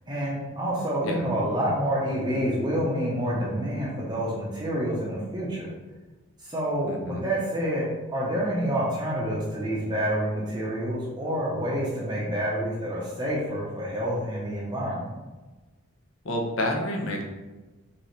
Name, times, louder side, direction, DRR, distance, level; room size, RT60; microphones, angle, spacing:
voice 1, 0.1-5.7 6.4-7.8 8.1-15.1, equal, 20° right, -6 dB, 0.8 m, -28 dB
voice 2, 6.9-7.2 16.2-17.3, left 1 dB, 65° left, 1 dB, 0.9 m, -29 dB
5.1 x 3.3 x 3.2 m, 1.2 s
head